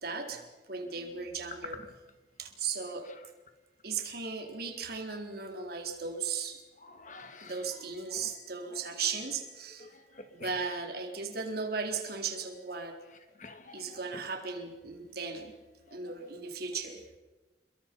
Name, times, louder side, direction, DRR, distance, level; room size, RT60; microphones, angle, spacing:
voice 1, 0.0-0.4 0.7-1.8 2.4-3.1 3.8-6.6 7.4-9.9 10.3-13.0 13.7-15.5 15.9-17.0, right 5 dB, 60° right, 3 dB, 3.9 m, -36 dB
voice 2, 6.8-7.5 8.2-8.3 8.9-9.0 9.8-9.9 10.2-10.5 13.4-14.0, left 3 dB, 45° left, 7 dB, 2.6 m, -48 dB
30.0 x 22.0 x 5.4 m, 1.2 s
head